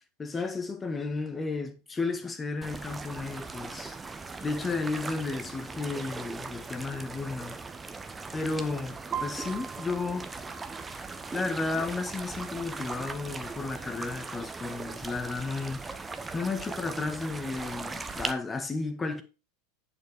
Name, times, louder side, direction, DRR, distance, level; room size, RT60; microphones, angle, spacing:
voice 1, 0.2-3.9 4.4-7.6 8.3-10.3 11.3-15.9 16.3-19.2, left 3 dB, 20° left, 1.5 m, -33 dB
sound 1, 2.6-18.3, right 4 dB, 15° right, 1.0 m, -39 dB
sound 2, 9.1-16.9, right 8 dB, 35° right, 3.3 m, -45 dB
8.6 x 7.1 x 3.5 m
figure-of-eight pair, 85°, 0 cm